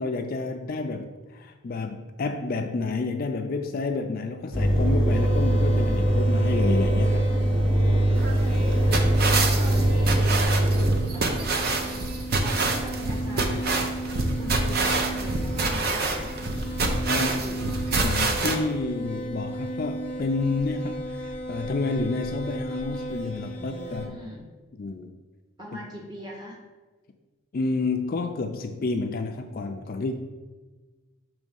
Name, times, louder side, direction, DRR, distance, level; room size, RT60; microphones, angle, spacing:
voice 1, 0.0-7.3 17.1-17.4 18.0-24.1 24.8-25.1 27.5-30.1, left 3 dB, 45° left, 5 dB, 0.3 m, -29 dB
Engine, 4.5-10.9, right 1 dB, 70° right, 2.0 m, -22 dB
sound 1, 5.1-24.1, right 1 dB, 5° left, 1.0 m, -36 dB
voice 2, 7.6-12.0 12.4-16.3 17.2-17.6 23.5-24.5 25.6-26.6, equal, 20° right, -3 dB, 1.3 m, -41 dB
sound 2, 8.2-18.6, right 3 dB, 45° right, 0.6 m, -27 dB
6.2 x 3.1 x 5.3 m, 1.3 s
head